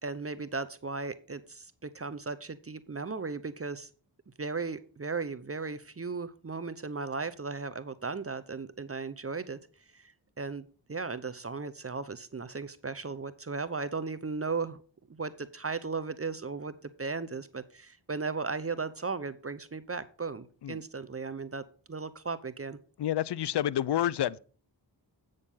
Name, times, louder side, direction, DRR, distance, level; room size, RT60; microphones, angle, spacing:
voice 1, 0.0-3.9 4.4-9.6 9.9-10.1 10.4-14.8 15.1-16.7 17.0-21.6 21.9-22.8, right 4 dB, 30° right, 0.8 m, -36 dB
voice 2, 23.0-24.4, left 11 dB, 65° left, 0.6 m, -29 dB
8.7 x 6.6 x 5.5 m
cardioid pair, 50°, 45 cm